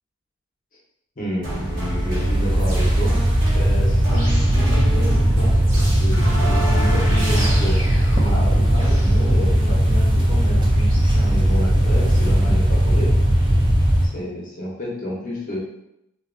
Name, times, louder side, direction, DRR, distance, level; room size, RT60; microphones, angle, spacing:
voice 1, 1.2-3.2 3.5-7.8 8.2-13.1 14.0-15.6, equal, 40° left, -3 dB, 0.7 m, -31 dB
sound 1, 1.4-11.2, equal, 70° right, 1.0 m, -30 dB
sound 2, 1.5-14.1, right 1 dB, 25° right, 0.4 m, -18 dB
2.7 x 2.3 x 2.5 m, 0.82 s
head